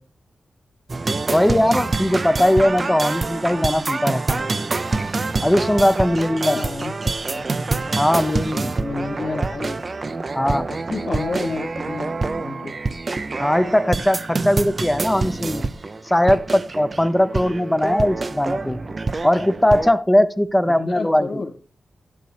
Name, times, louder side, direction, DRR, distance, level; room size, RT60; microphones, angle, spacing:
sound 1, 0.9-19.9, right 3 dB, 45° right, 0.5 m, -26 dB
voice 1, 1.3-4.4 5.4-6.6 8.0-8.7 10.3-10.7 13.4-15.7 16.1-18.8 19.2-21.4, left 1 dB, 10° left, 13 dB, 0.6 m, -19 dB
voice 2, 6.4-7.4 8.8-9.8 10.7-12.7 20.7-21.5, left 3 dB, 85° left, 0 dB, 1.7 m, -30 dB
10.0 x 9.5 x 3.3 m, 0.41 s
cardioid pair, 70°, 0 cm